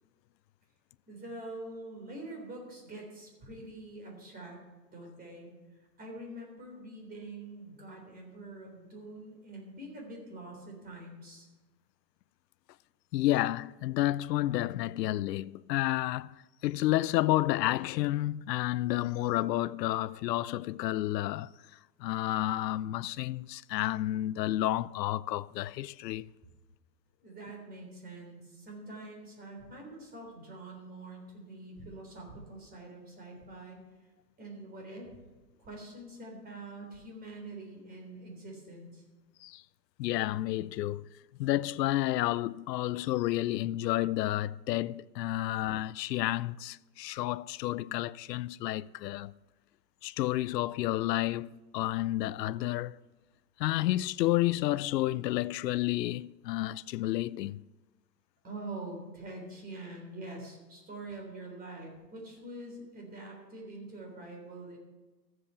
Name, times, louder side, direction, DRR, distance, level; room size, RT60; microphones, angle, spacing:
voice 1, 1.1-4.6 4.9-11.5 27.2-33.8 34.4-35.2 35.6-39.0 58.4-64.8, right 2 dB, 20° right, 3.5 m, -45 dB
voice 2, 13.1-16.4 16.6-21.5 22.0-26.3 39.4-39.6 40.0-41.0 41.4-49.3 50.0-53.0 53.6-57.6, left 15 dB, 75° left, 0.5 m, -30 dB
14.0 x 7.7 x 5.6 m
hypercardioid pair, 135°, 49 cm